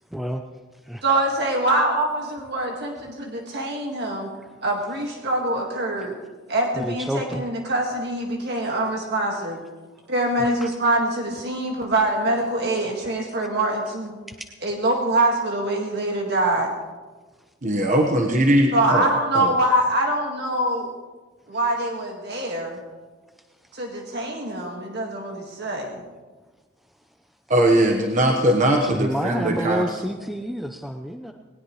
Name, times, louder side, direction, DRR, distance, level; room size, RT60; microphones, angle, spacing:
voice 1, 0.1-0.4 0.8-1.0 4.4-4.5 6.8-7.4 10.4-10.7 18.8-18.9 28.8-31.3, equal, ahead, 4 dB, 0.6 m, -29 dB
voice 2, 1.0-4.3 4.6-6.2 6.5-9.6 10.1-14.2 14.6-16.7 18.7-20.9 21.5-22.8 23.7-26.0, right 1 dB, 60° right, 1 dB, 1.9 m, -24 dB
voice 3, 17.6-19.1 19.3-19.5 27.5-29.9, right 1 dB, 40° right, 2 dB, 1.3 m, -20 dB
19.5 x 18.5 x 3.2 m, 1.3 s
head